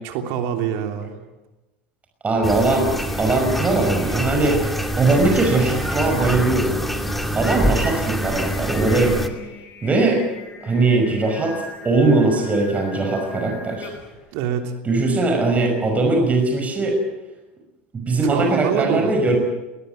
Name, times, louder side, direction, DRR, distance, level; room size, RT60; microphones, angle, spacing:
voice 1, 0.0-1.1 14.3-14.7 18.2-19.1, right 8 dB, 65° right, 5 dB, 3.3 m, -25 dB
voice 2, 2.2-2.9 3.2-6.8 7.3-9.2 9.8-10.2 10.6-13.9 14.8-17.0 17.9-19.4, right 2 dB, 25° right, 3 dB, 5.7 m, -20 dB
sound 1, 2.4-9.3, equal, ahead, 2.7 m, -25 dB
Singing, 2.5-14.2, left 3 dB, 50° left, 6.2 m, -40 dB
20.0 x 20.0 x 9.3 m, 1.0 s
hypercardioid pair, 80°, 6 cm